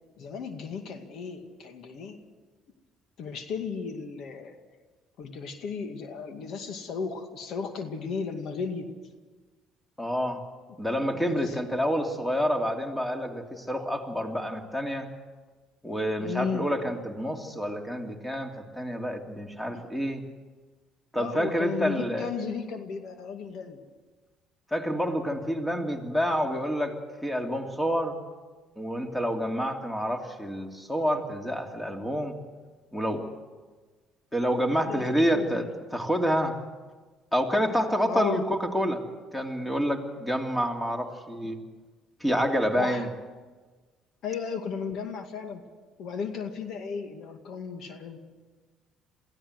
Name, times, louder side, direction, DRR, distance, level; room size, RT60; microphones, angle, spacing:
voice 1, 0.2-2.2 3.2-4.6 5.2-8.9 11.1-11.6 16.2-16.7 19.7-19.8 21.1-23.8 34.8-35.7 38.1-38.4 42.8-43.1 44.2-45.6 46.0-48.2, left 5 dB, 65° left, 6 dB, 2.2 m, -35 dB
voice 2, 10.0-10.4 10.8-15.1 15.8-20.2 21.1-22.3 24.7-28.2 28.8-32.3 32.9-33.2 34.3-36.6 37.3-39.0 39.3-41.6 42.2-43.1, equal, 5° left, 3 dB, 2.9 m, -28 dB
23.0 x 16.0 x 8.0 m, 1.4 s
supercardioid pair, 80°, 0 cm